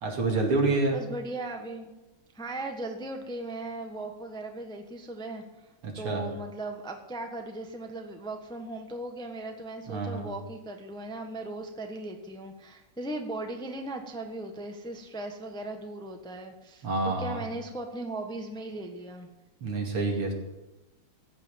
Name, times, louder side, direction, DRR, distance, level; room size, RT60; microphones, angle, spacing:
voice 1, 0.0-1.0 5.8-6.3 9.9-10.3 16.8-17.4 19.6-20.3, right 3 dB, 85° right, 0 dB, 3.5 m, -27 dB
voice 2, 0.9-1.9 2.3-5.4 6.0-19.3, right 2 dB, 5° left, 4 dB, 0.8 m, -38 dB
15.0 x 5.8 x 8.9 m, 1.1 s
omnidirectional pair, 2.4 m